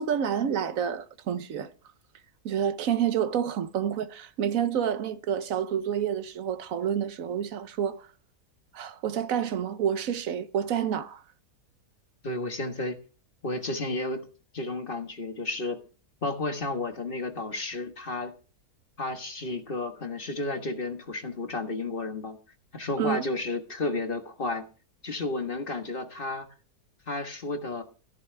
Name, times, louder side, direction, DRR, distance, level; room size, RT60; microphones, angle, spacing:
voice 1, 0.0-1.7 2.4-8.0 8.7-11.2 23.0-23.2, right 8 dB, 65° right, 1.2 m, -28 dB
voice 2, 12.2-13.0 13.4-14.3 14.5-15.8 16.2-18.3 19.0-22.4 22.7-24.6 25.0-26.5 27.1-27.8, left 2 dB, 35° left, 1.5 m, -32 dB
16.0 x 10.5 x 3.4 m
omnidirectional pair, 1.6 m